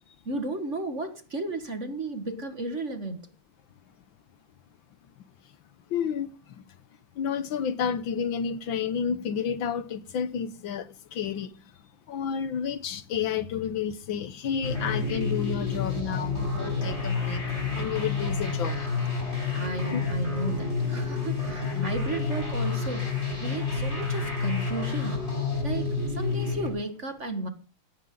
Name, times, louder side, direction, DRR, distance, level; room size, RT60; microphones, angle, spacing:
voice 1, 0.3-3.3 19.3-25.2 25.6-27.5, right 2 dB, 35° right, 1.9 m, -34 dB
voice 2, 5.9-6.3 7.2-11.5 12.1-17.4 17.7-18.8 19.9-20.0 21.7-21.9, left 7 dB, 70° left, 1.6 m, -30 dB
sound 1, 14.6-26.7, left 4 dB, 30° left, 6.8 m, -29 dB
17.5 x 15.5 x 3.8 m
omnidirectional pair, 2.4 m